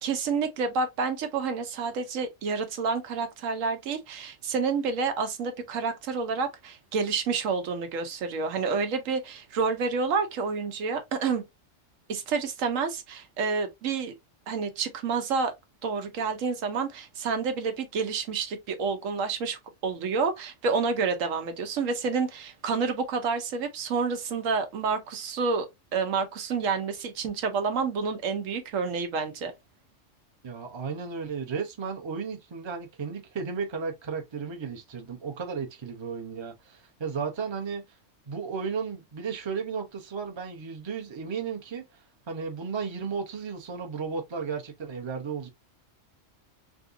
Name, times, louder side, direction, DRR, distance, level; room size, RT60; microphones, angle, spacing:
voice 1, 0.0-11.4 12.1-14.1 14.5-15.5 15.8-25.7 25.9-29.5, right 5 dB, 90° right, 1.1 m, -29 dB
voice 2, 30.4-37.8 38.3-41.8 42.3-45.5, right 5 dB, 30° right, 0.5 m, -34 dB
3.5 x 2.6 x 2.5 m
omnidirectional pair, 1.3 m